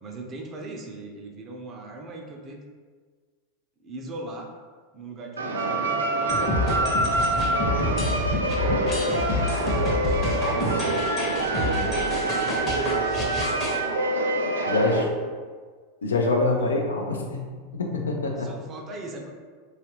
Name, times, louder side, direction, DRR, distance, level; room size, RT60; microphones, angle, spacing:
voice 1, 0.0-2.7 3.8-4.5 4.9-9.3 10.3-11.3 12.1-13.7 14.5-15.3 16.6-16.9 18.3-19.3, right 2 dB, 35° right, 1 dB, 0.5 m, -40 dB
sound 1, 5.4-15.0, right 2 dB, 85° right, 0.3 m, -26 dB
sound 2, 6.3-13.8, left 2 dB, 35° left, 0.8 m, -28 dB
voice 2, 11.6-11.9 14.7-15.1 16.0-18.5, left 3 dB, 85° left, 1 dB, 0.4 m, -26 dB
2.9 x 2.4 x 2.9 m, 1.5 s
hypercardioid pair, 95°, 0 cm